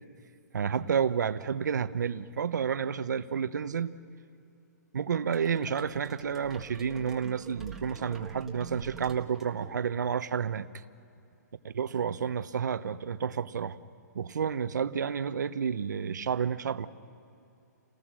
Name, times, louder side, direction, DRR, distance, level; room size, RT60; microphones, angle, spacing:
voice 1, 0.5-4.0 4.9-10.8 11.6-13.8 14.1-16.9, right 7 dB, 80° right, 13 dB, 1.0 m, -30 dB
sound 1, 5.3-10.2, right 4 dB, 5° right, 1.6 m, -47 dB
29.5 x 19.5 x 6.3 m, 2.6 s
hypercardioid pair, 160°, 10 cm